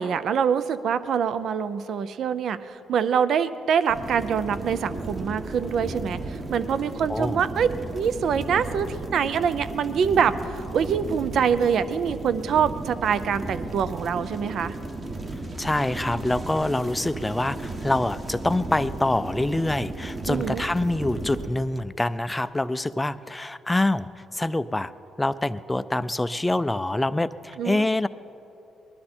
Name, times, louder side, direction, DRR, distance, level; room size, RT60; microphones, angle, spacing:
voice 1, 0.0-7.7 7.9-14.7 20.3-20.6 27.6-27.9, right 7 dB, 65° right, 14 dB, 0.5 m, -25 dB
sound 1, 3.9-21.5, right 2 dB, 35° right, 1.5 m, -35 dB
voice 2, 7.1-7.4 15.6-24.9 25.2-28.1, left 2 dB, 10° left, 14 dB, 0.4 m, -25 dB
20.0 x 12.0 x 4.4 m, 2.9 s
cardioid pair, 90°, 0 cm